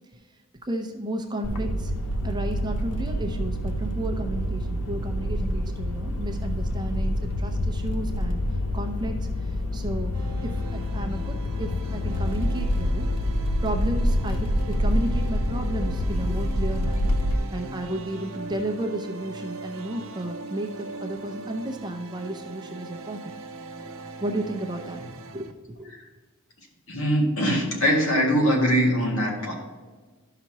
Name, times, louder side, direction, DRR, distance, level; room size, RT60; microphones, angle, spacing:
voice 1, 0.6-1.9 2.2-8.4 8.7-10.1 10.4-13.1 13.6-17.2 17.5-23.4 24.2-25.0 25.3-25.5 25.8-25.9, right 1 dB, 20° right, 3 dB, 0.6 m, -33 dB
sound 1, 1.4-17.3, left 1 dB, 90° left, 0.8 m, -27 dB
sound 2, 10.1-25.5, right 2 dB, 70° right, 0.7 m, -40 dB
voice 2, 26.9-29.5, equal, 65° left, -2 dB, 2.1 m, -22 dB
12.0 x 5.8 x 3.0 m, 1.3 s
head